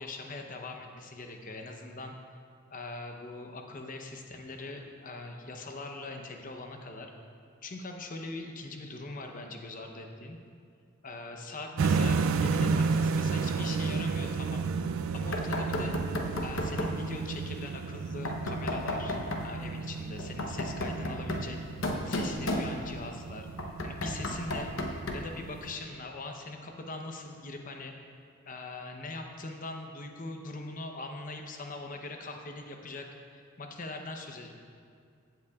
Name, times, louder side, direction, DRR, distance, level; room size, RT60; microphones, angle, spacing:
voice 1, 0.0-2.1 2.7-7.1 7.6-10.4 11.0-14.7 15.1-16.0 16.4-21.6 22.0-24.7 25.1-28.2 28.5-34.5, left 2 dB, 40° left, 4 dB, 0.8 m, -41 dB
sound 1, 11.8-25.8, right 4 dB, 75° right, 0.4 m, -32 dB
Knock, 15.3-17.0 18.2-19.5 20.2-23.1 23.6-25.4, left 1 dB, 65° left, 0.9 m, -33 dB
15.5 x 8.0 x 2.4 m, 2.2 s
head